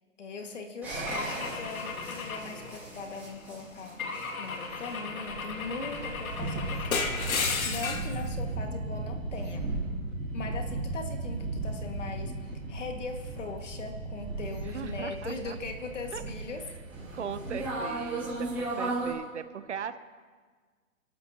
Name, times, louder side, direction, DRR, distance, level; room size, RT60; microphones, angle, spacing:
voice 1, 0.2-7.2 7.6-9.7 10.3-16.6, left 3 dB, 60° left, 3 dB, 2.0 m, -40 dB
sound 1, 0.8-19.1, right 2 dB, 5° right, 2.6 m, -36 dB
Car / Engine / Glass, 1.1-3.3 4.0-8.2, left 4 dB, 85° left, 1.8 m, -34 dB
voice 2, 14.5-15.6 16.1-16.2 17.1-20.0, right 7 dB, 55° right, 12 dB, 0.8 m, -39 dB
28.0 x 12.0 x 2.9 m, 1.5 s
hypercardioid pair, 180°, 41 cm